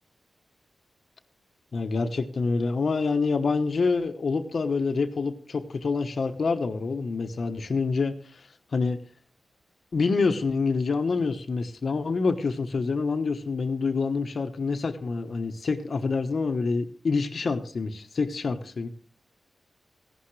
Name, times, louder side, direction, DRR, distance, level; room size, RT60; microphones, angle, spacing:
voice 1, 1.7-9.0 9.9-18.9, left 4 dB, 55° left, 6 dB, 1.1 m, -27 dB
16.0 x 11.5 x 3.3 m, 0.42 s
wide cardioid pair, 115°, 0 cm